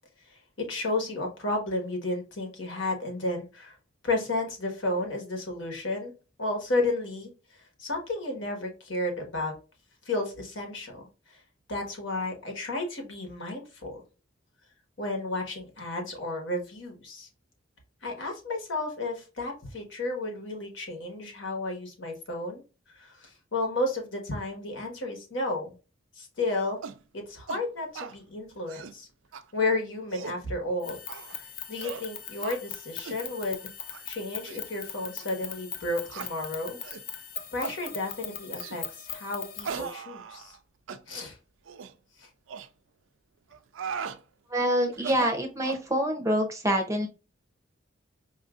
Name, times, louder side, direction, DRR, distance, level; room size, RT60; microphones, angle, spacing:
voice 1, 0.3-3.7 4.0-6.1 6.4-9.5 10.0-11.4 11.7-14.0 15.0-17.3 18.0-22.6 22.9-25.7 26.1-26.8 27.1-29.1 29.5-31.0 31.3-33.6 34.0-36.8 37.5-40.6 41.1-41.4 42.2-42.3, left 2 dB, 70° left, 2 dB, 1.3 m, -32 dB
sound 1, 26.8-27.0 27.5-27.6 27.9-28.2 28.6-29.0 29.3-29.4 29.9-30.4 31.1-31.4 31.8-32.1 32.4-32.6 33.0-33.2 33.8-34.0 34.5-34.6 35.2-35.3 36.1-36.3 36.8-37.1 37.6-37.8 38.6-38.8 39.6-40.6 40.9-41.0 41.6-41.9 42.5-42.7 43.5-44.2 44.9-45.9, right 6 dB, 80° right, 0.4 m, -38 dB
sound 2, 30.8-40.0, left 8 dB, 45° left, 0.5 m, -40 dB
voice 2, 44.5-47.1, equal, 15° right, 5 dB, 0.6 m, -26 dB
4.9 x 2.6 x 2.4 m, 0.31 s
head